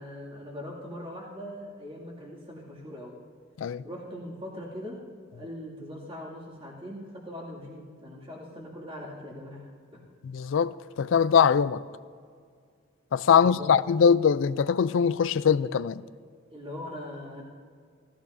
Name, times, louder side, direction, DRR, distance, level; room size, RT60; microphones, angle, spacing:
voice 1, 0.0-3.2 3.8-5.0 5.3-10.0 13.4-13.7 14.0-14.1 16.5-17.4, left 1 dB, 30° right, 2.4 m, -41 dB
voice 2, 10.2-11.8 13.1-16.0, left 7 dB, 80° left, 0.4 m, -22 dB
17.5 x 14.5 x 2.7 m
head